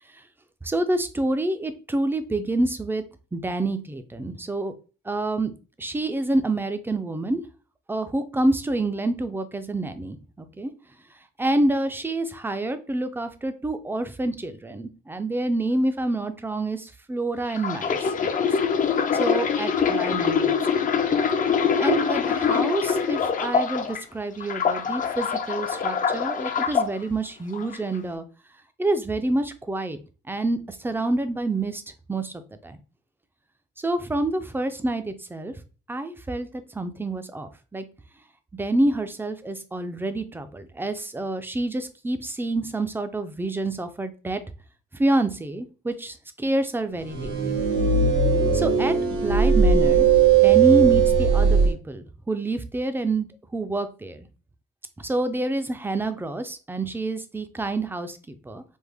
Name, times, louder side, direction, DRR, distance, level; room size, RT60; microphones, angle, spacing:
voice 1, 0.6-3.0 3.3-4.7 5.1-5.5 5.8-7.4 7.9-10.7 11.4-18.5 19.1-20.8 21.8-28.2 28.8-30.0 30.3-31.8 32.1-32.8 33.8-35.5 35.9-37.8 38.5-44.4 44.9-47.5 48.5-50.1 50.4-54.3 55.0-58.6, right 2 dB, 10° right, 9 dB, 0.4 m, -27 dB
sound 1, 17.5-24.0 24.4-26.9 27.5-27.8, left 6 dB, 40° left, 0.5 m, -24 dB
sound 2, 47.0-51.7, right 6 dB, 80° right, 1.6 m, -18 dB
3.4 x 2.0 x 3.4 m, 0.35 s
cardioid pair, 90°, 20 cm